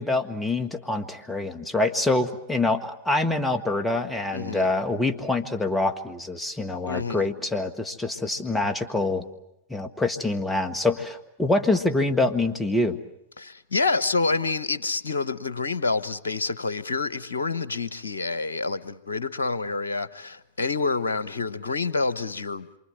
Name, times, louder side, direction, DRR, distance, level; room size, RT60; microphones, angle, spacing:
voice 1, 0.0-9.3 9.7-13.0, left 2 dB, 10° left, 1.8 m, -25 dB
voice 2, 4.3-4.7 6.9-7.3 13.4-22.7, left 3 dB, 80° left, 1.1 m, -27 dB
27.5 x 24.5 x 7.8 m
figure-of-eight pair, 95°, 0 cm